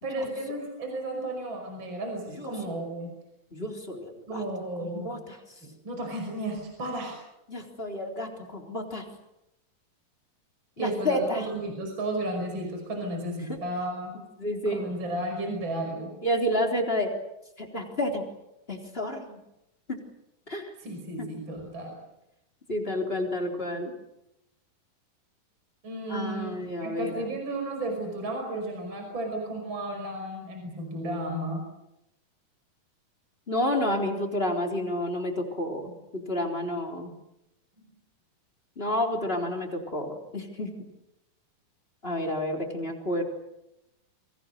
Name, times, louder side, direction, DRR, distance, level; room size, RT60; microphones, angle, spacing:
voice 1, 0.0-3.1 4.3-5.1 5.8-7.2 10.8-14.1 14.6-16.1 20.8-22.0 25.8-31.7 37.8-37.9, right 1 dB, 30° right, 2 dB, 6.1 m, -33 dB
voice 2, 3.5-4.4 4.8-5.4 7.5-9.0 10.8-11.5 13.5-13.6 14.4-14.8 16.2-17.1 17.6-18.2 18.7-19.4 19.9-20.0 20.5-20.7 21.2-21.3 22.7-23.9 26.1-27.2 33.5-37.1 38.8-40.7 42.0-43.2, left 1 dB, 15° left, 2 dB, 3.6 m, -30 dB
29.5 x 24.0 x 6.7 m, 0.88 s
omnidirectional pair, 4.1 m